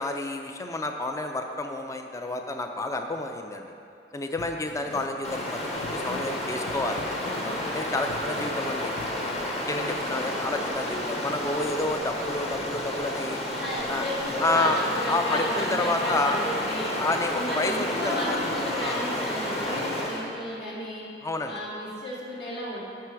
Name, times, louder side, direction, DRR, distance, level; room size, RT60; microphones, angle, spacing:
voice 1, 0.0-3.7 4.1-7.0 7.4-8.9 9.7-13.4 13.9-14.0 14.4-14.8 15.1-16.4 17.0-18.4 18.7-19.0 21.2-21.6, left 2 dB, 20° left, 4 dB, 0.4 m, -29 dB
sound 1, 4.4-9.5, left 4 dB, 90° left, 0.4 m, -43 dB
Stream, 5.2-20.3, left 1 dB, 35° left, 1.2 m, -31 dB
voice 2, 9.6-10.0 13.5-16.9 17.3-21.1 21.5-22.8, left 1 dB, 70° left, -6 dB, 1.9 m, -33 dB
10.5 x 5.9 x 4.7 m, 2.6 s
head